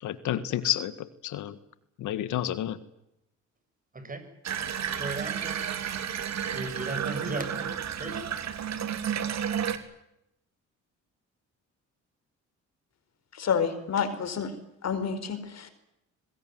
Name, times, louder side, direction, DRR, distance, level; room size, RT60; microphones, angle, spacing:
voice 1, 0.0-1.6 2.0-2.8, left 11 dB, 80° left, 14 dB, 1.7 m, -30 dB
Water tap faucet / Bathtub (filling or washing), 4.4-9.8, right 8 dB, 65° right, 3.1 m, -32 dB
voice 2, 5.0-5.6 6.4-7.7 7.9-8.2, right 2 dB, 25° right, 9 dB, 7.9 m, -36 dB
voice 3, 13.3-14.5 14.8-15.7, left 6 dB, 60° left, 11 dB, 4.8 m, -29 dB
24.0 x 20.5 x 9.3 m, 0.82 s
cardioid pair, 90°, 30 cm